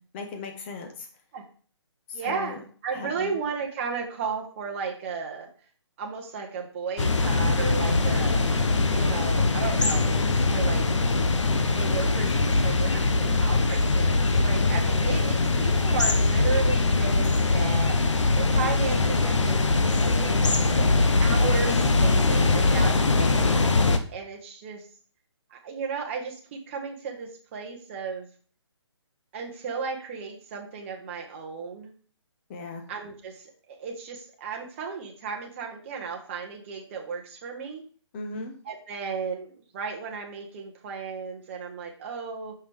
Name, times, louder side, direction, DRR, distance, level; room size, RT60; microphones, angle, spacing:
voice 1, 0.1-1.1 2.1-2.6 2.9-3.4 20.6-21.0 32.5-32.8 38.1-38.5, left 3 dB, 25° left, 4 dB, 0.9 m, -37 dB
voice 2, 2.1-5.5 6.0-8.5 8.9-10.9 11.8-18.0 18.4-23.7 24.1-24.9 25.5-28.3 29.3-31.9 32.9-37.8 38.6-42.5, right 5 dB, 25° right, 1 dB, 0.9 m, -34 dB
sound 1, 7.0-24.0, left 3 dB, 90° left, 0.8 m, -22 dB
5.7 x 5.1 x 3.4 m, 0.43 s
hypercardioid pair, 160°, 15 cm